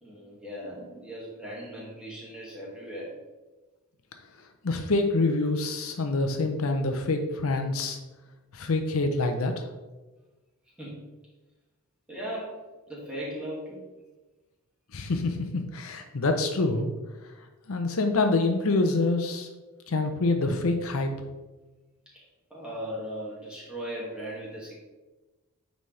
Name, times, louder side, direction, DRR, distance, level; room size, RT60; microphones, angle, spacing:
voice 1, 0.0-3.2 10.8-11.0 12.1-13.8 22.1-22.2 22.5-24.7, equal, 5° right, -7 dB, 1.9 m, -38 dB
voice 2, 4.6-8.0 8.5-9.6 14.9-16.9 17.7-19.5 19.9-21.1, left 2 dB, 70° left, 5 dB, 0.6 m, -26 dB
9.1 x 4.1 x 3.2 m, 1.2 s
head